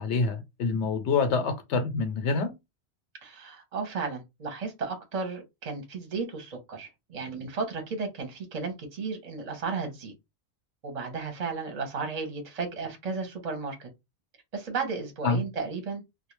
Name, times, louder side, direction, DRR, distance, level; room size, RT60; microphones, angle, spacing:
voice 1, 0.0-2.5 15.2-15.4, left 4 dB, 85° left, 0.9 m, -26 dB
voice 2, 3.2-10.1 10.8-13.9 14.5-16.0, right 4 dB, 40° right, 0.8 m, -34 dB
2.3 x 2.1 x 3.0 m
omnidirectional pair, 1.2 m